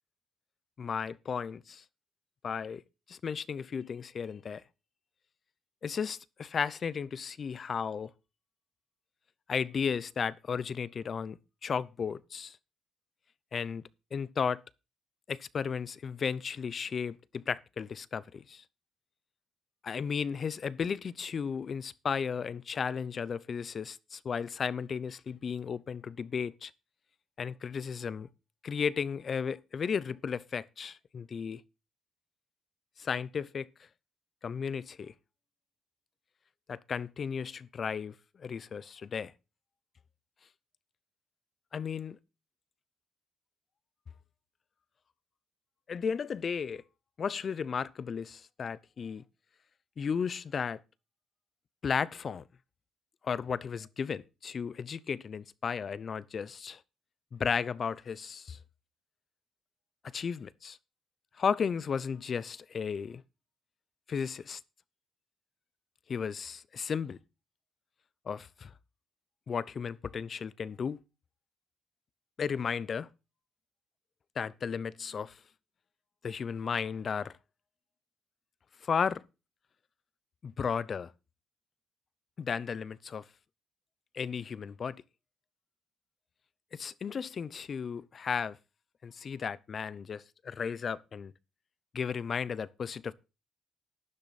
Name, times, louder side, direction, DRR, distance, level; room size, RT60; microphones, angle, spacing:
voice 1, 0.8-1.8 2.4-2.8 3.1-4.6 5.8-8.1 9.5-11.4 11.6-12.6 13.5-13.8 14.1-14.6 15.3-18.6 19.8-26.7 27.4-28.3 28.6-31.6 33.0-33.7 34.4-35.1 36.7-39.3 41.7-42.2 45.9-46.8 47.2-49.2 50.0-50.8 51.8-52.4 53.2-56.8 57.3-58.6 60.1-60.8 61.4-63.2 64.1-64.6 66.1-67.2 68.3-68.7 69.5-71.0 72.4-73.1 74.4-75.4 76.2-77.3 78.8-79.2 80.4-81.1 82.4-83.2 84.1-85.0 86.7-88.6 89.0-91.3 91.9-93.1, left 6 dB, 45° left, 0.6 m, -34 dB
12.0 x 10.5 x 4.1 m
cardioid pair, 90°, 0 cm